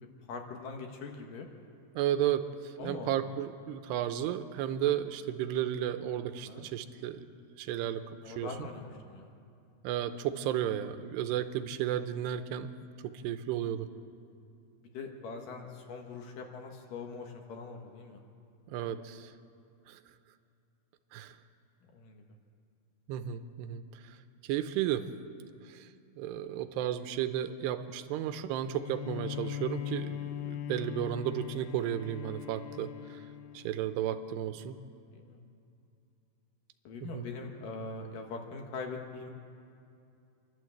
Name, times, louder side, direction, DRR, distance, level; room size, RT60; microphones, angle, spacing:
voice 1, 0.3-1.5 2.8-3.1 6.5-6.7 8.2-9.3 14.8-18.2 21.8-22.2 35.1-35.4 36.8-39.3, left 4 dB, 65° left, 3 dB, 2.7 m, -42 dB
voice 2, 2.0-7.3 7.6-8.5 9.8-12.7 13.0-13.9 18.7-19.3 19.9-20.0 21.1-21.4 23.1-24.2 24.4-25.1 25.7-25.9 26.2-33.2 33.5-34.8 37.1-37.3, right 11 dB, 85° right, 9 dB, 2.9 m, -33 dB
Bowed string instrument, 28.6-34.1, left 10 dB, 80° left, 2.7 m, -40 dB
28.0 x 12.0 x 7.8 m, 2.6 s
omnidirectional pair, 4.7 m